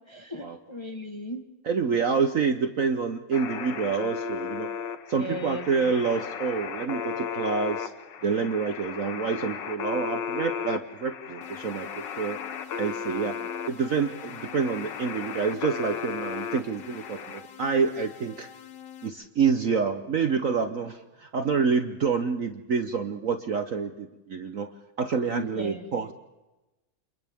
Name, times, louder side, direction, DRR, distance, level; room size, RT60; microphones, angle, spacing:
voice 1, 0.1-1.4 5.2-5.8 25.3-26.1, left 1 dB, 15° left, 6 dB, 1.2 m, -37 dB
voice 2, 1.6-4.7 5.1-7.9 8.2-11.9 12.2-12.4 12.8-13.4 13.7-18.5 19.0-24.7 25.0-26.1, right 5 dB, 50° right, 8 dB, 1.1 m, -27 dB
sound 1, 3.3-17.4, left 7 dB, 65° left, 1.8 m, -35 dB
sound 2, 11.4-19.1, left 8 dB, 90° left, 2.1 m, -47 dB
29.0 x 27.5 x 3.6 m, 1.0 s
omnidirectional pair, 2.1 m